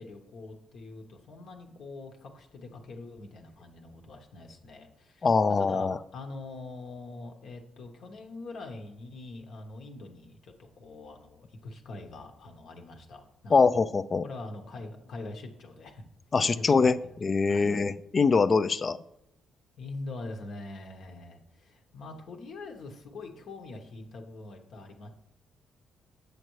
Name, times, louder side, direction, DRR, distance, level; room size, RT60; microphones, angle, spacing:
voice 1, 0.0-13.8 14.2-16.0 16.4-17.1 17.5-17.7 19.8-25.1, left 2 dB, 65° left, 2 dB, 1.0 m, -44 dB
voice 2, 5.2-6.0 13.5-14.2 16.3-19.0, left 4 dB, 35° left, 14 dB, 0.3 m, -23 dB
7.7 x 6.6 x 3.1 m, 0.81 s
cardioid pair, 90°, 0 cm